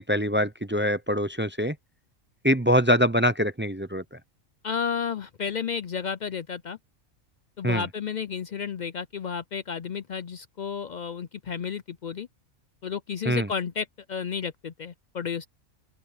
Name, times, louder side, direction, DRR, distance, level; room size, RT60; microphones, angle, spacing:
voice 1, 0.0-1.7 2.4-4.2 7.6-7.8 13.2-13.5, equal, 15° right, 0.4 m, -24 dB
voice 2, 4.6-6.8 7.6-12.3 12.8-15.5, left 6 dB, 60° left, 0.5 m, -32 dB
open air
omnidirectional pair, 1.3 m